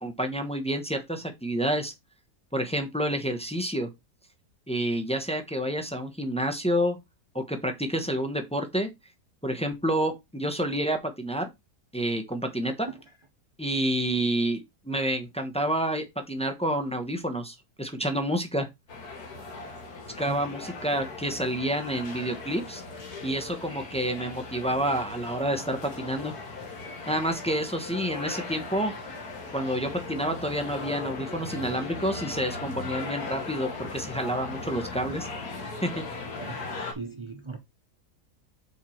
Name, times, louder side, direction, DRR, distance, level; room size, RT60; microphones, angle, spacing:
voice 1, 0.0-1.9 2.5-3.9 4.7-7.0 7.3-8.9 9.4-11.5 11.9-12.9 13.6-18.7 20.2-22.8 23.2-26.3 27.1-28.9 29.5-35.3 35.8-36.0, right 1 dB, 5° left, 0.8 m, -29 dB
sound 1, 18.9-36.9, left 3 dB, 65° left, 2.1 m, -38 dB
voice 2, 36.4-37.6, right 3 dB, 40° right, 0.4 m, -39 dB
6.7 x 4.6 x 4.4 m
omnidirectional pair, 1.8 m